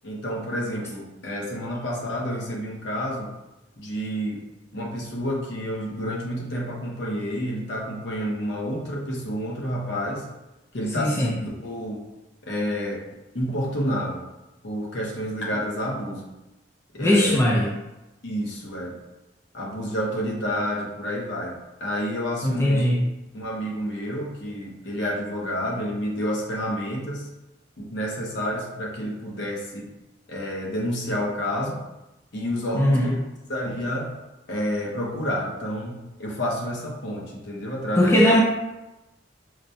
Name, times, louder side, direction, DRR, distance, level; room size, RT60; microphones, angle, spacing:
voice 1, 0.0-3.3 3.8-4.4 4.7-10.3 10.7-12.0 12.4-13.0 13.3-14.2 14.6-16.3 16.9-17.4 18.2-19.0 19.5-22.9 23.3-27.3 27.8-29.9 30.3-31.8 32.3-33.2 33.5-34.2 34.5-38.3, equal, 70° left, -3 dB, 0.8 m, -29 dB
voice 2, 11.0-11.3 17.0-17.7 22.4-23.0 32.7-33.1 38.0-38.4, left 1 dB, 15° left, -4 dB, 0.4 m, -19 dB
4.8 x 2.2 x 2.7 m, 1.0 s
head